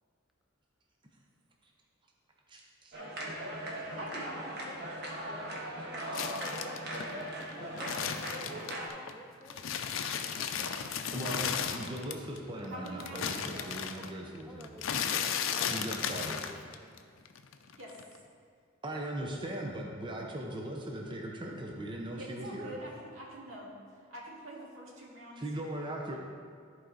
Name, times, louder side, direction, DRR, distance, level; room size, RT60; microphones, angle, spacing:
voice 1, 2.5-3.0 11.1-14.7 15.6-16.4 18.8-22.7 25.4-26.2, right 1 dB, 25° right, 0 dB, 0.7 m, -39 dB
sound 1, 2.9-8.9, right 1 dB, 50° right, 1.4 m, -39 dB
voice 2, 3.9-4.5 12.7-13.9 17.8-18.0 22.2-25.4, right 1 dB, 80° right, -3 dB, 2.0 m, -45 dB
voice 3, 5.1-9.7 10.4-10.7 12.6-12.8 13.1-13.3 14.4-16.0 16.3-16.9, right 1 dB, ahead, 1 dB, 0.4 m, -53 dB
sound 2, 6.1-9.1 9.5-12.4 12.6-17.0 17.3-18.2, left 7 dB, 75° left, 0.5 m, -35 dB
14.0 x 4.7 x 3.9 m, 2.1 s
head